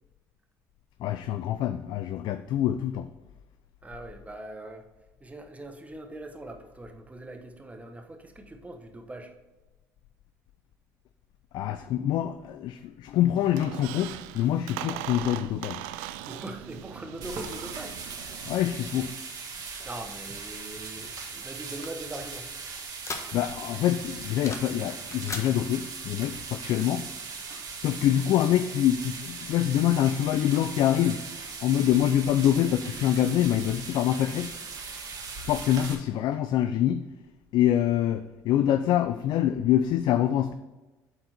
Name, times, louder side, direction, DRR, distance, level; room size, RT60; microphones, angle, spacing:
voice 1, 1.0-3.1 11.5-15.8 18.5-19.1 23.3-27.0 27.8-31.2 31.6-34.5 35.4-37.0 37.5-40.5, left 11 dB, 65° left, 10 dB, 0.4 m, -25 dB
voice 2, 3.8-4.9 5.2-9.3 16.3-18.0 19.8-22.5, right 1 dB, 15° right, 5 dB, 1.2 m, -41 dB
Squeak, 13.4-19.2, right 13 dB, 80° right, 0.4 m, -40 dB
sound 1, 17.2-35.9, right 4 dB, 50° right, 1.6 m, -39 dB
sound 2, 21.2-23.7 24.0-24.8 25.0-25.5, left 3 dB, 35° left, 1.3 m, -39 dB
7.8 x 4.3 x 4.5 m, 1.1 s
supercardioid pair, 75°, 8 cm